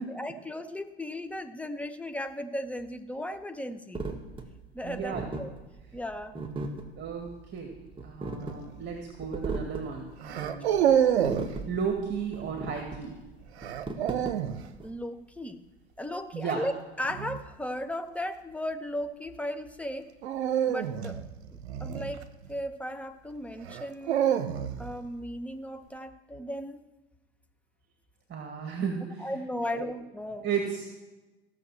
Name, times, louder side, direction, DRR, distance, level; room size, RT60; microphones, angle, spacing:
voice 1, 0.0-4.0 4.7-5.5 5.9-6.4 10.4-10.6 14.8-15.6 16.0-20.1 20.7-21.2 21.5-22.2 22.5-24.3 24.8-26.8 29.2-30.5, left 1 dB, 5° left, 7 dB, 1.0 m, -36 dB
sound 1, 3.9-14.9, right 3 dB, 15° right, 1.8 m, -38 dB
voice 2, 4.8-5.3 7.0-7.8 8.0-10.8 11.7-13.2 16.3-16.6 28.3-29.3 29.6-29.9 30.4-30.9, right 6 dB, 35° right, 3 dB, 2.1 m, -34 dB
sound 2, 8.4-8.7 10.3-11.5 13.6-14.6 17.0-17.4 20.2-22.6 23.6-24.9, right 9 dB, 75° right, 0.9 m, -28 dB
15.5 x 6.6 x 7.5 m, 1.1 s
hypercardioid pair, 80°, 33 cm